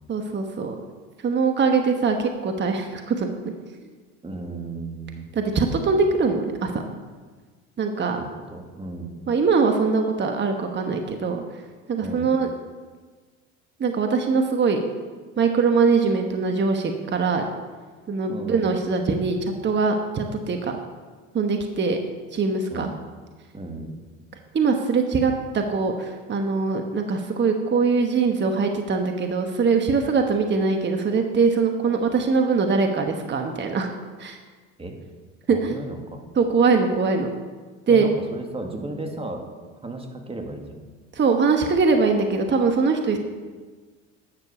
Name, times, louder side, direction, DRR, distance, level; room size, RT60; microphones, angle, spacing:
voice 1, 0.1-0.7 1.2-3.5 5.3-6.7 7.8-8.2 9.3-11.4 11.9-12.5 13.8-14.8 15.4-17.5 18.1-20.8 21.3-22.0 22.3-22.9 24.5-33.9 34.2-34.4 35.5-35.8 36.3-37.3 37.9-38.1 41.1-43.2, right 4 dB, 35° right, 4 dB, 1.3 m, -22 dB
voice 2, 4.2-5.3 8.2-9.1 12.0-12.3 18.3-18.7 22.7-22.9 23.5-23.9 34.8-35.0 35.5-36.2 37.9-39.4 39.8-40.8 43.1-43.2, right 2 dB, 15° right, 3 dB, 2.1 m, -34 dB
10.5 x 6.8 x 6.9 m, 1.4 s
hypercardioid pair, 80°, 33 cm